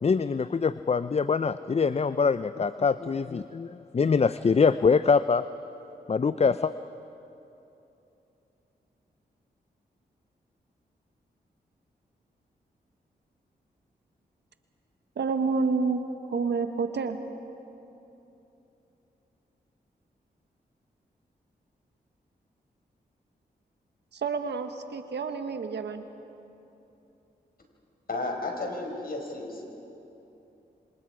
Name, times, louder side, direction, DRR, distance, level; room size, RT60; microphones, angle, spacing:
voice 1, 0.0-5.4 6.1-6.7, left 5 dB, 35° left, 14 dB, 0.5 m, -24 dB
voice 2, 15.2-16.0 16.3-17.2 24.1-26.1, right 4 dB, 70° right, 7 dB, 1.5 m, -29 dB
voice 3, 28.1-29.6, left 2 dB, 55° left, 1 dB, 5.3 m, -33 dB
26.5 x 26.0 x 4.9 m, 2.9 s
cardioid pair, 45°, 18 cm